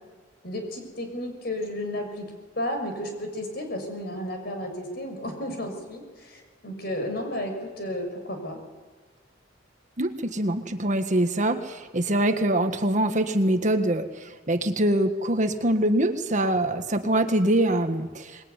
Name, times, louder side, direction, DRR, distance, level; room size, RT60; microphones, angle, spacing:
voice 1, 0.4-8.6, left 1 dB, 55° left, 4 dB, 6.6 m, -33 dB
voice 2, 10.0-18.4, right 1 dB, 40° right, 7 dB, 1.6 m, -24 dB
24.5 x 21.5 x 9.8 m, 1.4 s
head